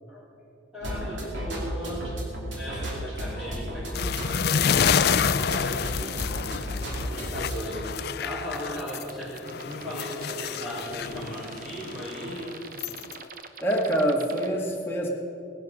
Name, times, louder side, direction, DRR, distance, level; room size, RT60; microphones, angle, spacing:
voice 1, 0.7-2.1 2.5-6.0 7.0-12.6, equal, 10° right, -12 dB, 4.1 m, -37 dB
sound 1, 0.8-7.6, equal, 75° right, 2.7 m, -33 dB
sound 2, 3.9-9.1 9.5-13.1, left 7 dB, 55° left, 0.4 m, -28 dB
sound 3, 5.0-14.5, right 4 dB, 45° right, 0.9 m, -44 dB
voice 2, 13.6-15.1, right 1 dB, 10° left, -2 dB, 1.9 m, -25 dB
18.5 x 10.5 x 6.2 m, 2.7 s
head